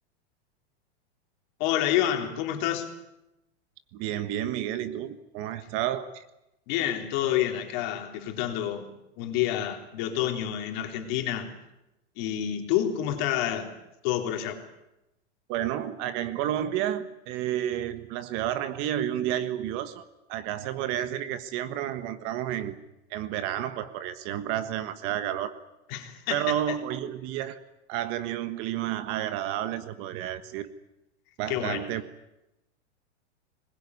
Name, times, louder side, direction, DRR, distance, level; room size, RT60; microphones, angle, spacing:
voice 1, 1.6-2.9 6.7-8.9 9.2-11.6 12.2-13.8 14.0-14.6 25.9-26.6 31.5-31.9, left 11 dB, 45° left, 3.5 m, -28 dB
voice 2, 3.9-6.3 15.5-20.0 20.3-22.7 23.1-25.5 26.3-27.6 27.9-30.7 31.4-32.0, right 11 dB, 35° right, 1.4 m, -31 dB
23.0 x 20.5 x 9.7 m
supercardioid pair, 155°, 34 cm